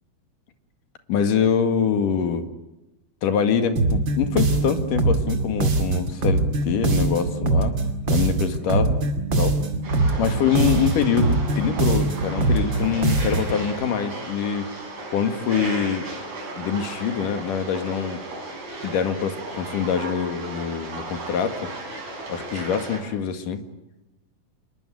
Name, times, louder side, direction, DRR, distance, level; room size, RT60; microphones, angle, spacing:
voice 1, 1.1-2.4 3.2-7.7 8.1-9.0 9.4-9.5 10.2-14.7 15.1-16.1 16.6-18.2 18.8-21.7 22.3-23.6, left 7 dB, 85° left, 7 dB, 3.6 m, -24 dB
sound 1, 3.8-13.6, right 2 dB, 40° right, 2.8 m, -22 dB
sound 2, 9.8-23.0, right 2 dB, 60° right, 6.5 m, -35 dB
27.5 x 21.5 x 9.3 m, 0.95 s
omnidirectional pair, 3.6 m